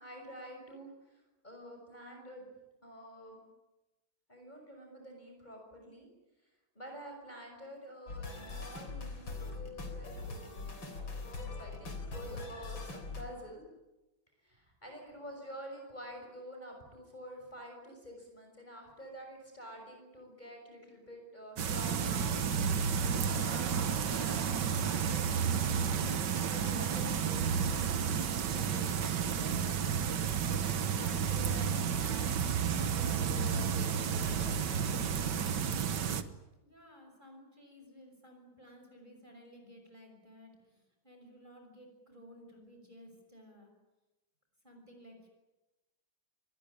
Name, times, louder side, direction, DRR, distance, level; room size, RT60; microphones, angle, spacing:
voice 1, 0.0-2.5 2.8-3.4 4.3-6.1 6.7-10.6 11.2-13.6 14.4-25.2 25.7-29.6 30.7-34.7, equal, 20° left, 1 dB, 6.4 m, -49 dB
sound 1, 8.1-13.2, left 3 dB, 75° left, 4.4 m, -42 dB
sound 2, 21.6-36.2, right 7 dB, 60° right, 1.8 m, -31 dB
voice 2, 36.6-43.7 44.6-45.3, equal, 20° right, 3 dB, 6.4 m, -56 dB
26.0 x 20.5 x 9.9 m, 1.0 s
omnidirectional pair, 2.2 m